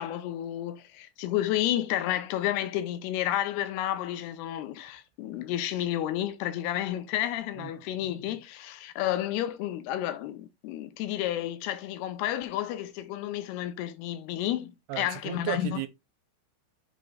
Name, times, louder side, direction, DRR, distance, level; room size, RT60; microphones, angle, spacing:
voice 1, 0.0-15.8, left 12 dB, 85° left, 2.7 m, -31 dB
voice 2, 14.9-15.9, right 13 dB, 85° right, 2.7 m, -34 dB
7.9 x 3.1 x 3.9 m
omnidirectional pair, 4.8 m